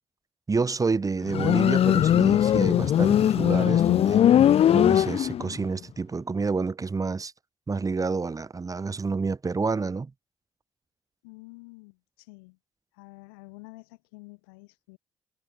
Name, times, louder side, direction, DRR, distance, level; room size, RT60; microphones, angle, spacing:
voice 1, 0.5-4.2 4.7-7.3 7.7-10.1, right 4 dB, 30° right, 1.1 m, -29 dB
Motorcycle, 1.3-5.6, left 10 dB, 55° left, 0.7 m, -20 dB
voice 2, 11.2-12.6 12.9-15.0, left 29 dB, 85° left, 3.0 m, -49 dB
hypercardioid pair, 50°, 12 cm